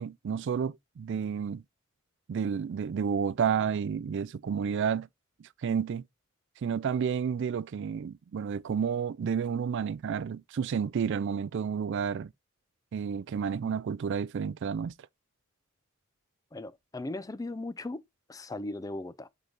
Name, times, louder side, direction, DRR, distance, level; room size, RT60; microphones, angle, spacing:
voice 1, 0.0-1.6 2.3-5.1 5.6-6.0 6.6-12.3 12.9-14.9, right 7 dB, 55° right, 0.3 m, -30 dB
voice 2, 16.5-18.0 18.3-19.3, left 2 dB, 15° left, 0.4 m, -37 dB
8.1 x 4.0 x 3.3 m
head